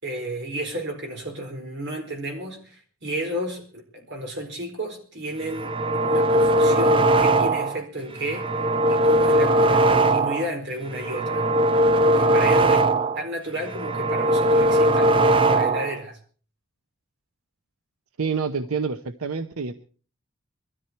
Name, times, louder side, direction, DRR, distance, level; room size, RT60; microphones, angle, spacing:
voice 1, 0.0-5.7 6.0-8.5 8.9-11.5 12.0-12.9 13.1-16.2, right 1 dB, 55° right, 3 dB, 4.5 m, -32 dB
sound 1, 5.4-7.8 8.2-10.5 10.9-13.2 13.6-16.0, right 1 dB, 25° right, 0.8 m, -20 dB
voice 2, 18.2-19.7, right 5 dB, 85° right, 9 dB, 0.8 m, -27 dB
21.5 x 13.5 x 4.5 m, 0.40 s
head